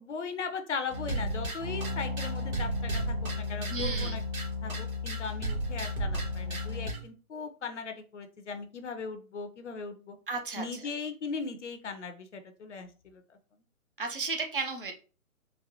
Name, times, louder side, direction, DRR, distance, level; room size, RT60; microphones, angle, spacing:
voice 1, 0.0-4.2 4.6-10.2 10.6-13.4, left 5 dB, 55° left, 7 dB, 0.7 m, -38 dB
sound 1, 0.9-7.0, equal, 75° right, 1.5 m, -33 dB
voice 2, 3.7-4.2 10.3-10.6 14.0-14.9, right 4 dB, 40° right, 5 dB, 0.6 m, -33 dB
4.1 x 2.1 x 2.8 m, 0.36 s
figure-of-eight pair, 140°, 43 cm